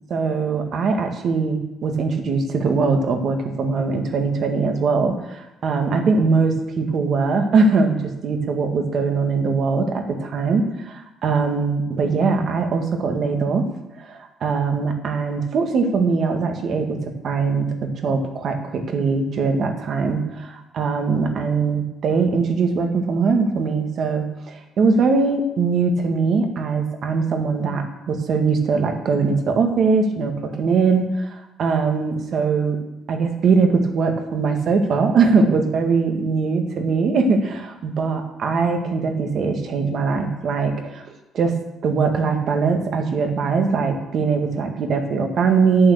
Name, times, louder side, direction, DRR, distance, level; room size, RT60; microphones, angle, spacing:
voice 1, 0.1-13.7 14.0-17.0 17.2-32.8 33.1-41.0 41.3-45.9, right 4 dB, 55° right, 4 dB, 1.9 m, -21 dB
8.9 x 8.7 x 7.0 m, 0.97 s
cardioid pair, 115°, 0 cm